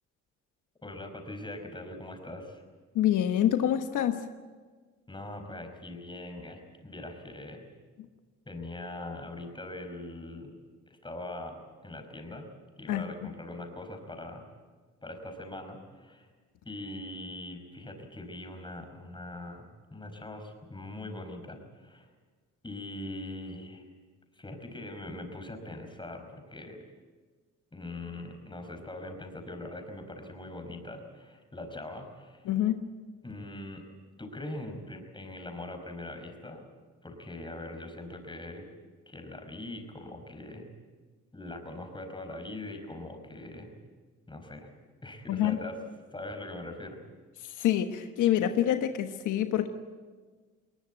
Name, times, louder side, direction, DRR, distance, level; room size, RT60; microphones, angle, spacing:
voice 1, 0.8-2.6 5.1-7.7 8.4-10.6 10.9-12.5 12.8-14.4 15.0-16.3 16.6-22.1 22.6-23.8 24.3-26.8 27.7-32.5 33.2-33.8 34.2-36.6 37.0-38.7 39.1-40.7 41.3-43.7 44.3-44.7 45.0-45.8 46.1-47.0, left 1 dB, 15° left, 5 dB, 5.1 m, -42 dB
voice 2, 2.9-4.2 12.9-13.0 32.5-32.8 45.3-45.6 47.4-49.7, left 11 dB, 85° left, 7 dB, 1.3 m, -26 dB
21.0 x 20.0 x 9.3 m, 1.4 s
cardioid pair, 90°, 30 cm